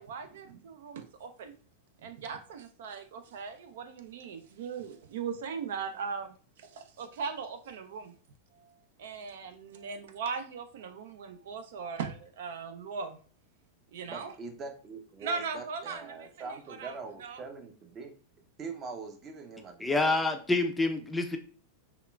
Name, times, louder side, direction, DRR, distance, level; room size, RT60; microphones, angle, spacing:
voice 1, 0.0-1.5 2.0-6.3 6.8-8.1 9.0-13.2 13.9-14.3 15.2-16.0 16.8-16.9 17.2-17.4, right 5 dB, 70° right, 8 dB, 0.4 m, -38 dB
voice 2, 14.0-18.1 18.6-20.2, right 4 dB, 30° right, 5 dB, 0.6 m, -43 dB
voice 3, 19.8-21.4, left 2 dB, 10° left, 5 dB, 0.4 m, -27 dB
3.5 x 2.3 x 2.2 m, 0.40 s
hypercardioid pair, 105°, 0 cm